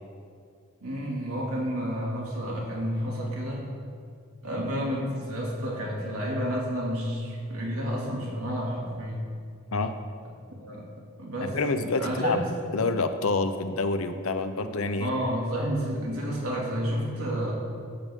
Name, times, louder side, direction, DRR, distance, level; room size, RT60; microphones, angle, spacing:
voice 1, 0.8-3.7 4.4-9.2 10.6-10.9 11.2-11.6 11.9-12.4 15.0-17.5, equal, 85° right, -3 dB, 2.5 m, -30 dB
voice 2, 11.4-12.4 12.7-15.1, left 3 dB, 75° left, 9 dB, 0.7 m, -27 dB
15.0 x 7.8 x 3.7 m, 2.2 s
head